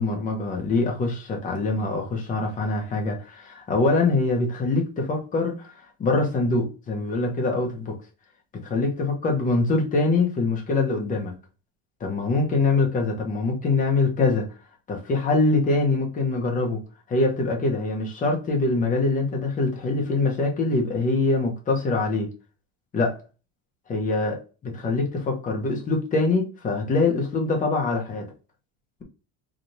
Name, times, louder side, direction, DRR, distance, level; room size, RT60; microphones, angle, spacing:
voice 1, 0.0-8.0 8.6-11.3 12.0-14.5 14.9-16.8 17.1-22.3 22.9-23.2 23.9-28.3, left 3 dB, 20° left, 1.0 m, -24 dB
5.0 x 2.6 x 2.8 m
cardioid pair, 170°, 39 cm